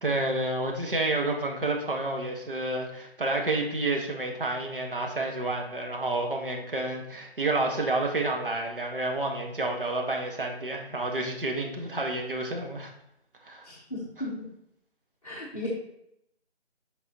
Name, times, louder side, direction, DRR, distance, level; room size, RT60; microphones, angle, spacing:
voice 1, 0.0-12.9 13.4-13.7 14.2-14.3, right 2 dB, 55° right, 1 dB, 1.4 m, -29 dB
voice 2, 13.6-14.5 15.2-15.7, left 1 dB, 35° left, -6 dB, 1.2 m, -36 dB
11.5 x 4.1 x 2.9 m, 0.78 s
figure-of-eight pair, 165°, 33 cm